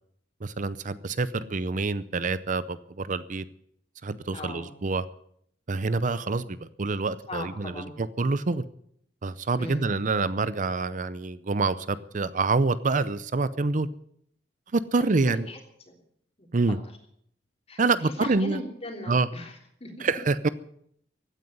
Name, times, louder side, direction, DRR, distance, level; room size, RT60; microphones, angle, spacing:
voice 1, 0.4-3.4 4.0-5.0 5.7-8.6 9.2-13.9 14.7-15.5 16.5-16.8 17.8-18.6 19.1-19.3 20.0-20.5, right 3 dB, 45° right, 16 dB, 0.6 m, -26 dB
voice 2, 4.3-4.7 7.3-8.0 9.6-9.9 15.1-15.6 15.9-16.0 16.4-16.5 17.7-20.1, left 2 dB, 35° left, 3 dB, 3.3 m, -39 dB
15.5 x 9.5 x 9.4 m, 0.68 s
head